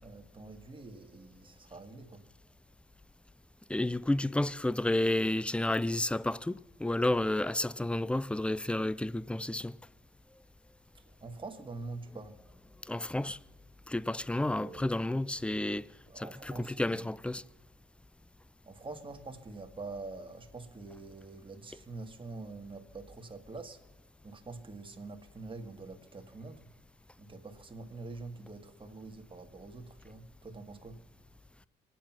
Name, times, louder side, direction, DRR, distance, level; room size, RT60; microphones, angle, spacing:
voice 1, 0.0-2.3 10.9-12.4 14.5-15.1 16.1-17.1 18.6-23.8 24.2-26.7 27.2-31.0, right 3 dB, 25° right, 1.7 m, -45 dB
voice 2, 3.7-9.8 12.9-13.4 13.9-15.9 16.2-17.4, left 1 dB, 5° left, 0.4 m, -31 dB
24.0 x 9.1 x 5.9 m
cardioid pair, 90°, 20 cm